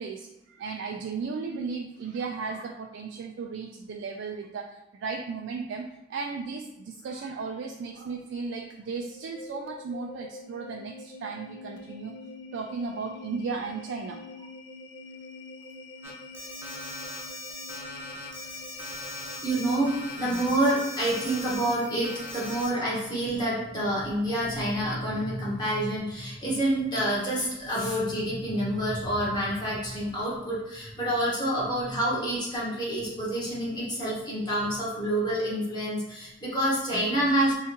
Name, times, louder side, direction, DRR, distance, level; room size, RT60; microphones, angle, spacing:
voice 1, 0.0-12.2 12.5-14.5, right 4 dB, 90° right, 2 dB, 0.3 m, -35 dB
sound 1, 9.0-22.9, left 4 dB, 85° left, 0.4 m, -44 dB
Alarm, 16.0-21.7 22.0-22.7, equal, 15° right, 0.6 m, -40 dB
voice 2, 19.4-37.6, right 1 dB, 25° left, -7 dB, 1.3 m, -28 dB
3.7 x 2.4 x 2.8 m, 0.91 s
head